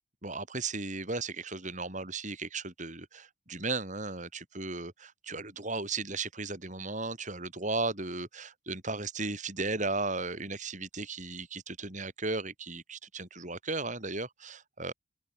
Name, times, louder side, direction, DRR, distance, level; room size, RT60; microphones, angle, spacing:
voice 1, 0.2-14.9, right 3 dB, 40° right, 5.1 m, -35 dB
open air
head